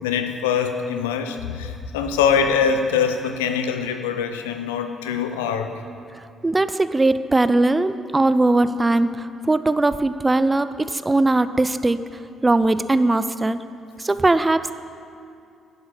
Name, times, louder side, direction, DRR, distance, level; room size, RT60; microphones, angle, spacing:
voice 1, 0.0-5.7, left 6 dB, 80° left, 7 dB, 0.6 m, -23 dB
voice 2, 6.4-12.0 12.4-13.6 14.0-14.7, right 2 dB, 20° right, 13 dB, 0.5 m, -20 dB
11.0 x 7.9 x 6.6 m, 2.5 s
hypercardioid pair, 45°, 0 cm